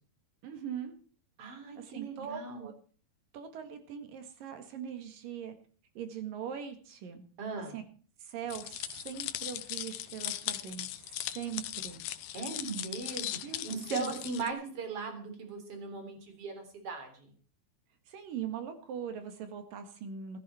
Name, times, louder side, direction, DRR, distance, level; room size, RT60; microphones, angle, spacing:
voice 1, 0.4-1.0 1.8-2.7 3.3-5.5 6.0-7.2 7.7-7.8 8.2-12.0 13.4-13.7 13.9-14.2 18.1-20.4, right 8 dB, 65° right, 8 dB, 3.4 m, -41 dB
voice 2, 1.4-2.7 7.4-7.8 12.3-17.3, right 4 dB, 40° right, 6 dB, 4.3 m, -38 dB
sound 1, 8.5-14.5, left 14 dB, 75° left, 2.5 m, -39 dB
15.0 x 14.0 x 4.4 m, 0.41 s
omnidirectional pair, 4.5 m